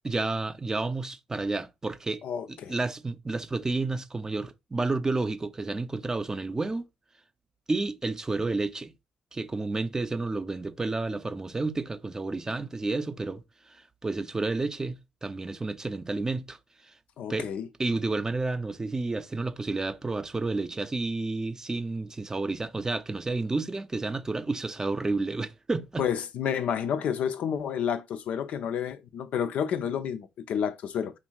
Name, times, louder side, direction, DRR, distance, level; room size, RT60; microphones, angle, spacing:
voice 1, 0.0-2.2 2.5-6.9 7.7-8.9 9.3-13.4 13.7-14.9 15.2-16.6 17.3-17.5 17.8-26.0, right 3 dB, 20° right, 0.5 m, -30 dB
voice 2, 2.2-2.7 17.2-17.7 26.0-31.1, left 8 dB, 60° left, 0.4 m, -30 dB
3.5 x 2.5 x 2.9 m
figure-of-eight pair, 45°, 3 cm